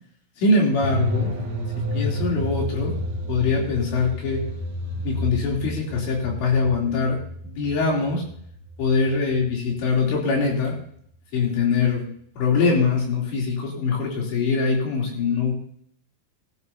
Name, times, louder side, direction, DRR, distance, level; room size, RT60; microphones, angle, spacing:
voice 1, 0.4-1.3 1.7-3.0 3.3-4.4 5.0-7.2 7.4-8.2 8.8-10.8 11.3-12.1 12.4-15.5, left 4 dB, 65° left, -2 dB, 5.4 m, -23 dB
sound 1, 0.8-10.7 11.0-11.1, equal, 35° right, 2.5 m, -31 dB
21.5 x 12.5 x 2.8 m, 0.66 s
omnidirectional pair, 5.5 m